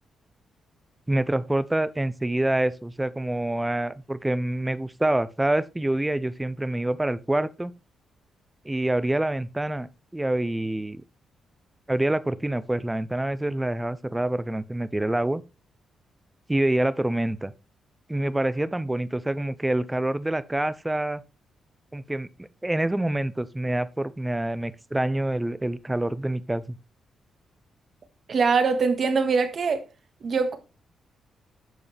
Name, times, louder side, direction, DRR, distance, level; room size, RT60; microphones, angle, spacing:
voice 1, 1.1-7.7 8.6-11.0 11.9-15.4 16.5-17.5 18.1-21.2 21.9-26.8, right 1 dB, 10° right, 0.6 m, -26 dB
voice 2, 28.3-29.8 30.2-30.6, right 5 dB, 50° right, 1.8 m, -22 dB
10.5 x 6.8 x 3.4 m
cardioid pair, 110°, 0 cm